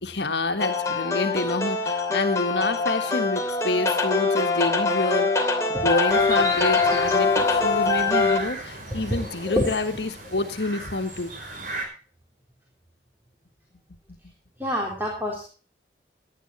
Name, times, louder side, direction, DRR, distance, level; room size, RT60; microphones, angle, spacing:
voice 1, 0.0-5.5 5.8-11.3, left 2 dB, 75° left, 5 dB, 1.6 m, -28 dB
sound 1, 0.6-8.4, left 3 dB, 15° left, 2.8 m, -23 dB
sound 2, 6.1-11.9, right 2 dB, 50° right, 5.4 m, -36 dB
voice 2, 9.1-9.8 14.6-15.4, equal, 10° right, -1 dB, 3.7 m, -27 dB
17.5 x 11.0 x 4.2 m, 0.38 s
head